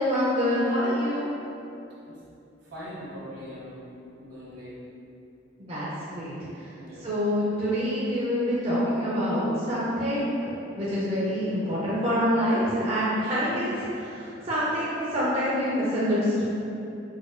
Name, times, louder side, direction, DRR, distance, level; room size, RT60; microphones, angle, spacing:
voice 1, 0.0-1.3 5.6-6.6 7.0-10.4 10.8-16.4, equal, 35° right, -9 dB, 0.5 m, -26 dB
voice 2, 2.7-3.8 4.2-4.7 6.8-7.1, equal, 70° right, -8 dB, 1.0 m, -41 dB
4.0 x 2.2 x 2.4 m, 2.8 s
head